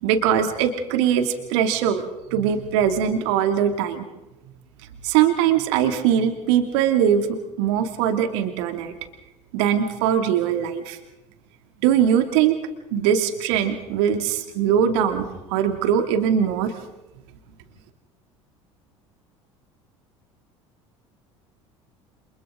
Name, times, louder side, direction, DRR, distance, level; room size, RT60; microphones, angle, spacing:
voice 1, 0.0-2.0 2.3-4.0 5.0-8.9 9.5-11.0 11.8-12.6 12.9-16.7, right 9 dB, 65° right, 6 dB, 2.6 m, -21 dB
29.5 x 27.0 x 3.9 m, 0.98 s
figure-of-eight pair, 65°, 16 cm